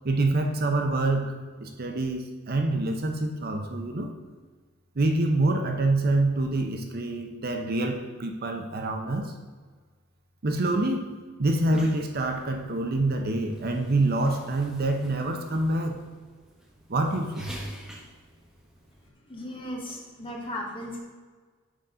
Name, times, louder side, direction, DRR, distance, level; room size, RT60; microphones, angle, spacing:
voice 1, 0.0-1.4 1.6-4.1 5.0-9.3 10.4-11.1 11.4-16.0 16.9-17.6, right 2 dB, 50° right, 4 dB, 0.7 m, -26 dB
sound 1, 11.7-19.1, equal, 5° right, 0.9 m, -49 dB
voice 2, 19.2-21.0, left 1 dB, 25° left, -1 dB, 1.2 m, -36 dB
6.3 x 4.1 x 4.9 m, 1.4 s
head